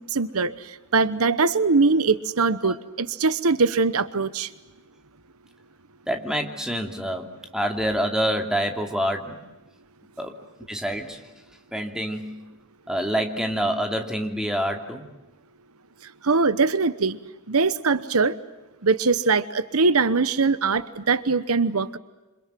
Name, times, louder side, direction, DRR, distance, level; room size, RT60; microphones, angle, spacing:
voice 1, 0.1-0.5 0.9-4.5 16.2-17.2 17.5-18.4 18.8-22.0, right 4 dB, 75° right, 14 dB, 1.0 m, -22 dB
voice 2, 6.1-9.4 10.2-10.3 10.7-11.2 11.7-12.4 12.9-15.1, equal, 5° right, 3 dB, 2.8 m, -27 dB
28.0 x 26.5 x 7.6 m, 1.1 s
head